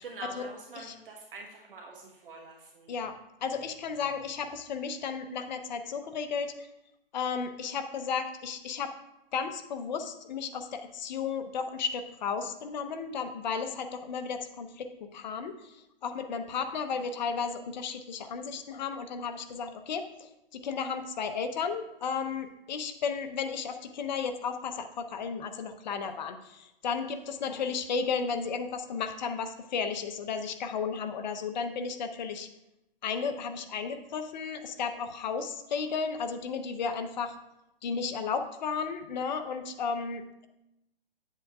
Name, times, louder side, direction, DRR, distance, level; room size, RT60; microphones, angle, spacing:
voice 1, 0.0-2.9, right 3 dB, 65° right, -1 dB, 1.2 m, -45 dB
voice 2, 2.9-6.7 7.1-8.9 9.3-15.8 16.0-32.5 33.0-37.3 37.8-40.5, left 5 dB, 50° left, 8 dB, 0.8 m, -34 dB
9.7 x 7.7 x 2.4 m, 0.90 s
hypercardioid pair, 150°, 29 cm